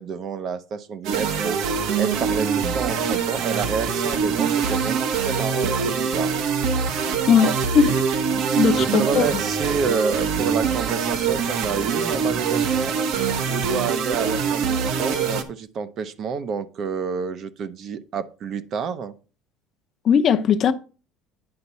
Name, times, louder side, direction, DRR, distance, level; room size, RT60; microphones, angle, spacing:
voice 1, 0.0-6.3 7.4-7.5 8.7-12.9 13.5-19.1, right 5 dB, 40° right, 0.7 m, -29 dB
sound 1, 1.0-15.4, right 6 dB, 60° right, 1.2 m, -24 dB
voice 2, 7.0-8.0 8.6-9.2 20.0-20.7, left 7 dB, 35° left, 0.7 m, -19 dB
9.6 x 5.7 x 4.1 m
cardioid pair, 155°, 0 cm